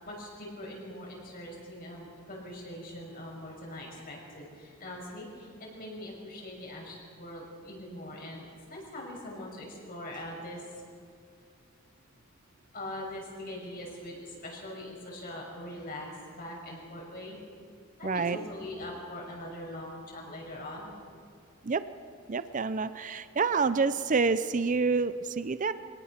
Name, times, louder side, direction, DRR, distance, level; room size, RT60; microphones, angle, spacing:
voice 1, 0.0-10.6 12.7-17.4 18.0-20.9, left 1 dB, 45° left, -2 dB, 6.0 m, -42 dB
voice 2, 18.0-18.4 21.6-21.8 22.3-25.7, right 4 dB, 35° right, 13 dB, 0.5 m, -28 dB
24.0 x 18.0 x 5.9 m, 2.2 s
head